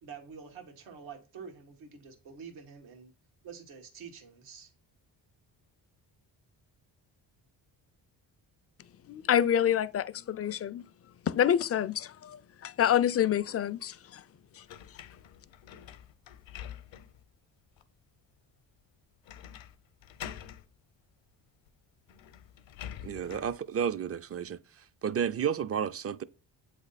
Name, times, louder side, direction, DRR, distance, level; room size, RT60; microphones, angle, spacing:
voice 1, 0.0-3.1 3.4-4.7, right 6 dB, 85° right, 1.6 m, -47 dB
voice 2, 9.1-10.8 11.2-14.2 14.5-14.7, left 10 dB, 35° left, 0.4 m, -27 dB
sound 1, 14.7-17.2 17.8-17.9 19.3-19.7 20.0-20.6 21.7-21.8 22.1-23.6, left 10 dB, 70° left, 0.7 m, -46 dB
voice 3, 23.0-24.6 25.0-26.2, right 8 dB, 35° right, 0.4 m, -31 dB
7.8 x 3.3 x 4.0 m
cardioid pair, 65°, 47 cm